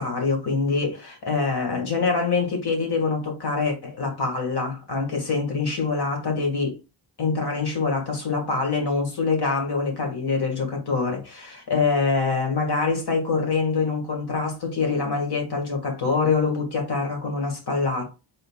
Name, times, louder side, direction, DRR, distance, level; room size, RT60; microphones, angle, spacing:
voice 1, 0.0-6.7 7.2-18.1, left 4 dB, 60° left, 1.9 m, -25 dB
5.2 x 3.9 x 2.4 m
wide cardioid pair, 125°, 45 cm